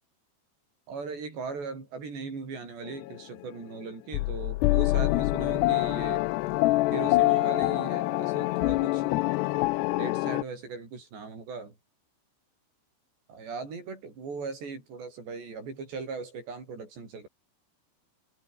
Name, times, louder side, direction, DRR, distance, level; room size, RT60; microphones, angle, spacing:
voice 1, 0.9-6.3 6.9-9.1 9.9-11.7 13.3-17.3, right 4 dB, 85° right, 10.0 m, -39 dB
sound 1, 2.9-3.2 4.1-10.4, left 20 dB, 85° left, 2.8 m, -25 dB
omnidirectional pair, 4.8 m